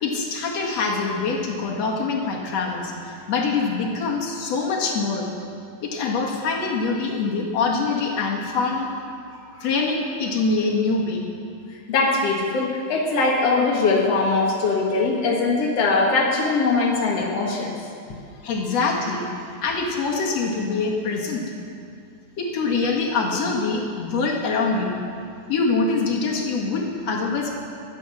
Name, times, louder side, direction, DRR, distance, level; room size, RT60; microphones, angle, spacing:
voice 1, 0.0-5.2 5.8-8.9 9.6-11.2 18.4-19.2 19.6-21.4 22.4-25.0 25.5-27.5, left 4 dB, 50° left, -2 dB, 2.1 m, -24 dB
voice 2, 11.9-17.8, left 3 dB, 70° left, -2 dB, 1.5 m, -21 dB
24.0 x 9.3 x 6.2 m, 2.4 s
omnidirectional pair, 5.3 m